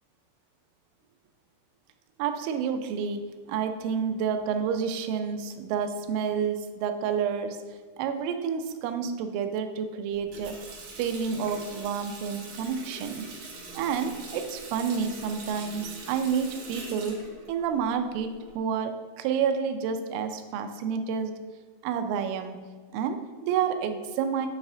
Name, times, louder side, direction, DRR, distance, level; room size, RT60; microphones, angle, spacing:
voice 1, 2.2-7.6 8.0-10.6 10.9-13.3 13.7-17.2 17.5-21.3 21.8-22.6 22.9-24.5, right 7 dB, 85° right, 7 dB, 3.0 m, -29 dB
Water tap faucet, 10.1-18.6, right 3 dB, 70° right, 2.1 m, -43 dB
9.8 x 4.0 x 2.6 m, 1.5 s
omnidirectional pair, 5.4 m